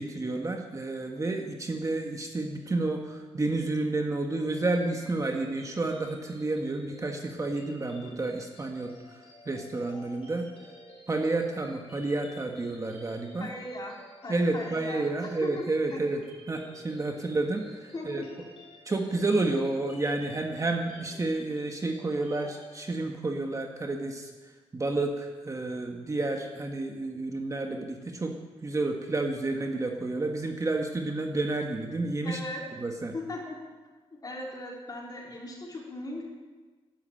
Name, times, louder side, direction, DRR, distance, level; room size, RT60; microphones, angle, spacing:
voice 1, 0.0-9.2 9.4-10.5 11.1-13.5 14.3-16.2 16.5-18.2 18.8-24.3 24.7-28.4 28.6-32.4 32.8-33.1, right 2 dB, 30° right, 3 dB, 1.6 m, -30 dB
sound 1, 4.5-22.8, equal, 55° left, 5.4 m, -51 dB
voice 2, 13.4-14.0 14.2-15.6 15.9-16.0 17.9-18.3 32.2-32.6 33.1-33.6 34.1-36.2, left 2 dB, 35° left, -2 dB, 4.2 m, -38 dB
12.0 x 9.9 x 8.9 m, 1.3 s
cardioid pair, 100°, 11 cm